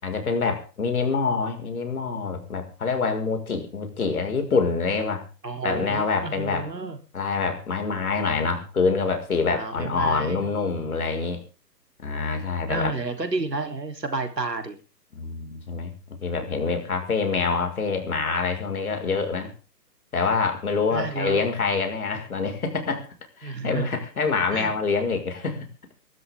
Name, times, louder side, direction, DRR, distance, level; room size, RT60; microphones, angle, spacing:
voice 1, 0.0-5.3 5.6-6.7 7.1-11.4 12.0-12.9 15.1-15.9 16.2-19.5 20.1-23.1 23.4-25.7, left 4 dB, 60° left, 5 dB, 5.8 m, -26 dB
voice 2, 5.4-7.0 9.5-10.5 12.7-14.8 20.9-21.5 23.4-23.9 24.5-24.7, right 3 dB, 75° right, 7 dB, 3.9 m, -30 dB
24.0 x 13.0 x 3.8 m, 0.35 s
figure-of-eight pair, 135°, 49 cm